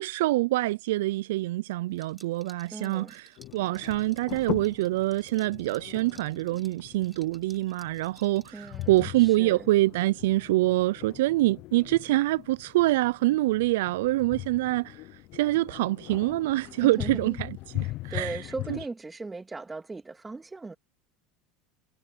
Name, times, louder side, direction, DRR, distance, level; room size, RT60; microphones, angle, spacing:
voice 1, 0.0-15.0 15.3-18.3, right 18 dB, 75° right, 0.5 m, -25 dB
Liquid, 1.9-9.3, equal, ahead, 4.1 m, -58 dB
voice 2, 2.7-3.1 8.5-9.7 16.8-17.5 18.1-20.7, right 3 dB, 15° right, 3.0 m, -38 dB
sound 1, 3.4-18.9, left 19 dB, 55° left, 0.7 m, -40 dB
hypercardioid pair, 80°, 0 cm